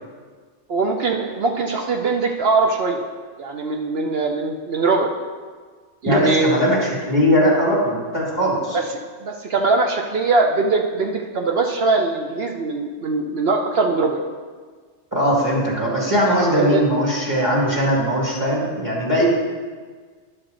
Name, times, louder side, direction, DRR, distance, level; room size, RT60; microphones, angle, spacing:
voice 1, 0.7-3.0 3.4-5.1 6.0-6.6 8.7-8.8 9.2-14.2 16.3-16.8, right 3 dB, 60° right, 2 dB, 0.8 m, -21 dB
voice 2, 6.1-8.8 15.1-19.3, equal, 15° right, -6 dB, 2.1 m, -20 dB
11.0 x 6.1 x 3.9 m, 1.5 s
omnidirectional pair, 1.3 m